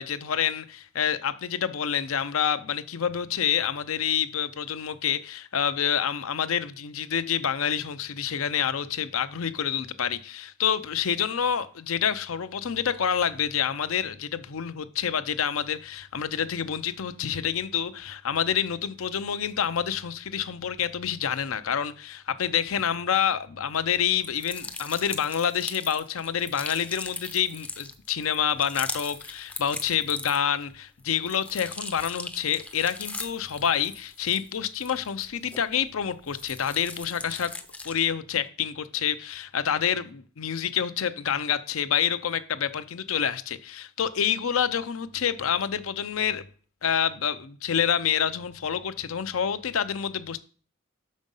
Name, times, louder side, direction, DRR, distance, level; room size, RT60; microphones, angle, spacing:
voice 1, 0.0-37.5 37.8-46.4 46.8-50.4, left 8 dB, 70° left, 0.6 m, -28 dB
sound 1, 24.2-30.6 31.0-35.9 36.2-38.1, left 2 dB, 5° left, 0.5 m, -39 dB
6.2 x 5.2 x 5.3 m
head